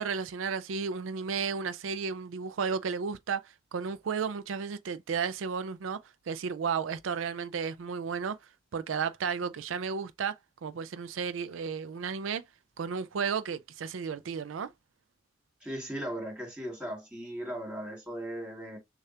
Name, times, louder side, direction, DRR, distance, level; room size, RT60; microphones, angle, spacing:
voice 1, 0.0-6.0 6.3-8.4 8.7-12.4 12.8-14.7, right 6 dB, 85° right, 0.4 m, -33 dB
voice 2, 15.6-18.8, right 1 dB, 5° right, 2.2 m, -37 dB
6.4 x 2.4 x 2.8 m
head